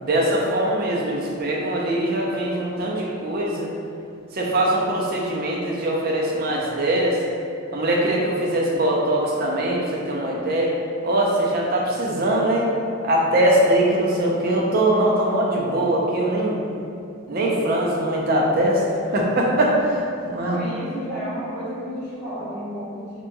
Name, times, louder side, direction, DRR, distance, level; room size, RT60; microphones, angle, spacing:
voice 1, 0.0-3.7 4.3-7.2 7.7-10.8 11.0-12.7 13.0-16.6 17.3-18.8 19.1-20.6, right 1 dB, 45° right, -2 dB, 0.4 m, -22 dB
voice 2, 20.4-23.2, equal, 10° left, -14 dB, 1.0 m, -31 dB
2.9 x 2.2 x 2.5 m, 2.5 s
head